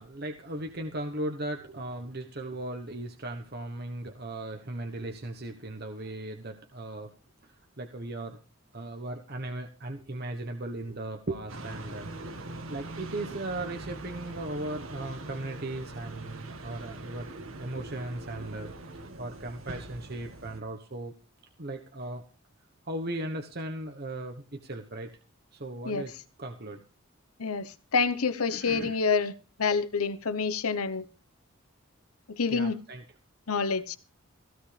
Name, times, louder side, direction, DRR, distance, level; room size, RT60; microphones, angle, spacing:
voice 1, 0.0-7.1 7.4-8.4 8.7-18.7 19.2-21.1 21.6-22.2 22.8-25.2 25.5-26.1 26.4-26.8 28.5-29.0 32.5-33.0, right 1 dB, 45° right, 1.2 m, -37 dB
sound 1, 11.5-20.6, right 2 dB, 70° right, 1.8 m, -42 dB
voice 2, 27.4-29.3 29.6-31.0 32.4-32.8 33.5-34.0, left 5 dB, 85° left, 1.0 m, -27 dB
16.0 x 15.5 x 3.4 m
head